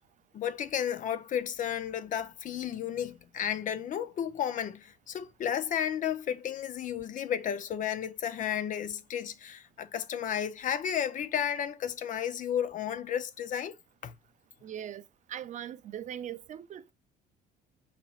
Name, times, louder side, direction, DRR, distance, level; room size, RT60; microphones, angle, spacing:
voice 1, 0.3-13.7 14.0-14.1, left 9 dB, 50° left, 0.6 m, -33 dB
voice 2, 14.6-15.0 15.3-16.9, right 10 dB, 45° right, 0.5 m, -40 dB
4.2 x 4.1 x 2.3 m
cardioid pair, 110°, 17 cm